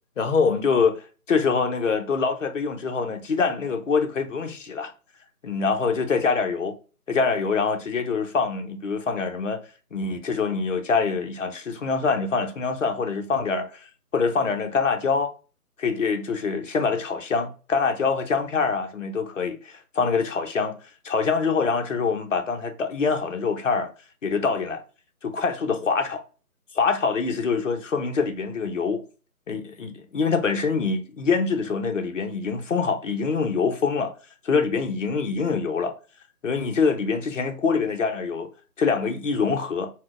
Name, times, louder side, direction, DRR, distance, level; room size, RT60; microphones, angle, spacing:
voice 1, 0.2-1.0 1.3-4.9 5.4-6.7 7.1-9.6 9.9-13.9 14.1-15.3 15.8-20.8 21.0-23.9 24.2-24.8 25.2-26.2 26.7-29.0 29.5-34.1 34.4-35.9 36.4-38.5 38.8-39.9, left 5 dB, 55° left, 0.6 m, -24 dB
4.1 x 2.1 x 2.4 m
figure-of-eight pair, 165°, 45 cm